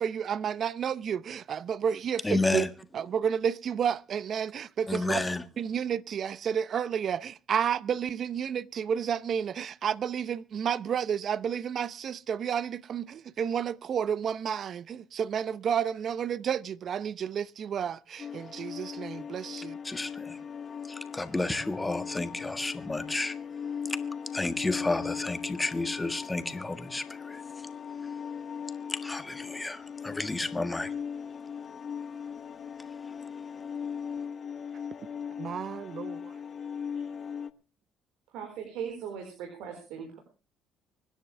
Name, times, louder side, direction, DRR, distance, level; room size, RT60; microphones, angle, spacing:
voice 1, 0.0-2.7 2.9-5.2 5.6-19.8 35.4-36.3, right 8 dB, 55° right, 0.7 m, -31 dB
voice 2, 2.2-2.7 4.9-5.4 19.8-20.4 20.8-23.4 23.8-27.7 28.0-28.1 28.9-30.9 32.8-32.9, left 2 dB, 15° left, 1.6 m, -31 dB
sound 1, 18.2-37.5, left 7 dB, 45° left, 1.0 m, -39 dB
voice 3, 38.3-40.2, right 7 dB, 85° right, 4.6 m, -39 dB
25.0 x 10.5 x 3.4 m
cardioid pair, 90°, 0 cm